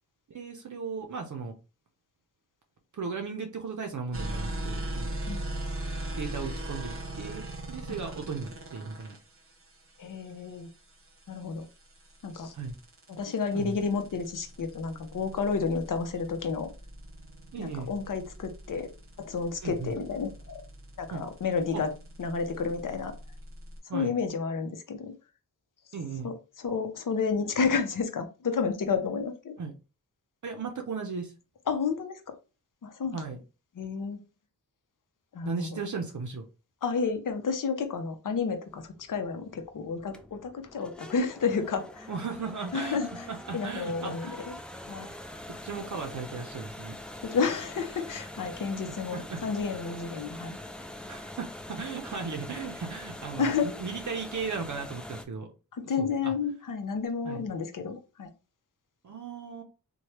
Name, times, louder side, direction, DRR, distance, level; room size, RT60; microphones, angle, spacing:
voice 1, 0.3-1.5 2.9-5.2 6.1-9.2 12.5-12.7 13.5-13.7 17.5-17.9 19.6-19.9 21.1-21.3 21.7-21.8 23.9-24.1 25.9-26.3 29.6-29.7 30.4-31.3 33.1-33.4 35.4-36.4 42.1-43.0 43.3-44.4 45.6-47.0 49.1-49.4 51.1-55.5 56.0-56.3 57.2-57.4 59.0-59.6, right 5 dB, 55° right, 4 dB, 0.6 m, -36 dB
sound 1, 4.1-23.8, right 1 dB, 40° right, 0.9 m, -40 dB
voice 2, 5.3-5.7 7.9-8.0 10.0-10.7 11.3-11.7 12.2-12.5 13.1-16.7 17.6-18.9 19.2-20.6 21.0-21.9 22.2-23.1 23.9-25.1 26.2-29.5 31.7-32.2 32.8-33.2 33.7-34.2 35.3-35.8 36.8-42.1 42.7-43.3 43.5-44.5 44.9-45.1 47.2-50.6 53.4-53.7 55.7-58.3, left 5 dB, 60° left, 8 dB, 0.6 m, -31 dB
sound 2, 38.7-55.2, left 1 dB, 5° left, 0.3 m, -43 dB
3.1 x 2.2 x 2.9 m, 0.32 s
cardioid pair, 55°, 36 cm